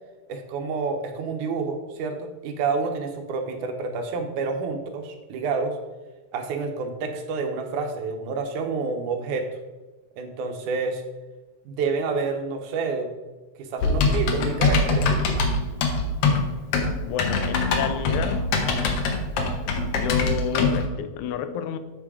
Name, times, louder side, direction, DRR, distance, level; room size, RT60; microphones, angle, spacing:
voice 1, 0.3-5.8 6.3-9.5 10.2-11.0 11.7-13.1 13.6-15.1, right 4 dB, 80° right, 2.4 m, -28 dB
Typing, 13.8-20.8, left 3 dB, 65° left, 1.8 m, -23 dB
voice 2, 17.0-18.5 19.9-21.8, left 8 dB, 85° left, 2.0 m, -30 dB
7.5 x 6.1 x 4.8 m
omnidirectional pair, 3.4 m